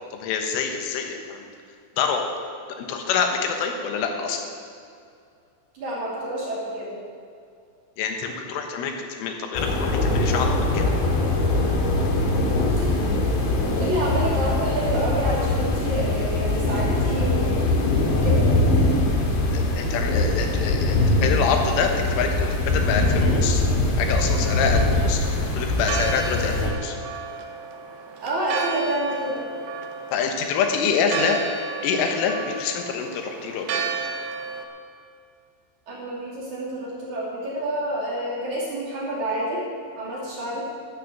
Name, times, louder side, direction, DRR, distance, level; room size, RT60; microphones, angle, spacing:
voice 1, 0.2-1.5 2.0-2.3 2.8-4.5 8.0-10.9 19.5-27.0 30.1-31.4 31.8-33.9, left 6 dB, 85° left, 3 dB, 3.8 m, -26 dB
voice 2, 5.7-7.0 12.8-12.9 13.8-17.6 18.1-18.5 19.8-19.9 28.2-29.4 35.9-39.6 40.0-40.7, right 1 dB, 45° right, -6 dB, 3.6 m, -28 dB
sound 1, 9.6-26.7, left 2 dB, 65° left, 3.8 m, -22 dB
Church bell, 24.1-34.6, right 5 dB, 75° right, 2.8 m, -33 dB
13.0 x 9.9 x 6.7 m, 2.4 s
omnidirectional pair, 5.5 m